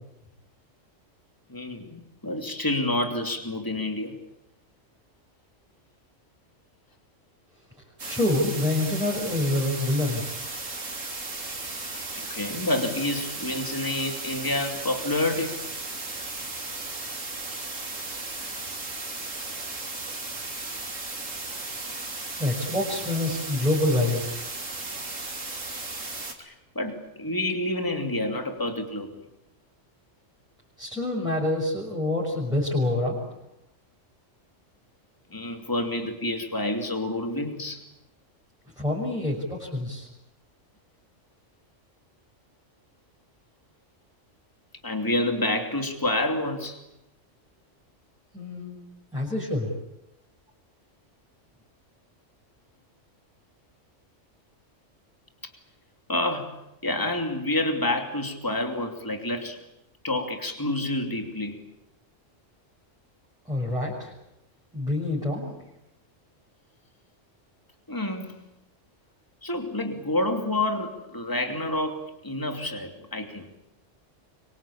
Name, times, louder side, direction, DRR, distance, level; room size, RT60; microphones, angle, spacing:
voice 1, 1.5-4.1 12.2-15.6 26.4-29.1 35.3-37.8 44.8-46.8 56.1-56.6 56.8-59.6 60.0-61.6 67.9-68.3 69.4-73.5, left 1 dB, 15° left, 4 dB, 2.9 m, -28 dB
sound 1, 8.0-26.3, right 3 dB, 90° right, 3.4 m, -35 dB
voice 2, 8.1-10.2 22.3-24.3 30.8-33.2 38.8-40.1 48.3-48.8 49.1-49.7 63.5-64.1 64.7-65.5, left 1 dB, 5° right, -5 dB, 6.2 m, -26 dB
25.5 x 23.5 x 8.7 m, 0.85 s
omnidirectional pair, 1.3 m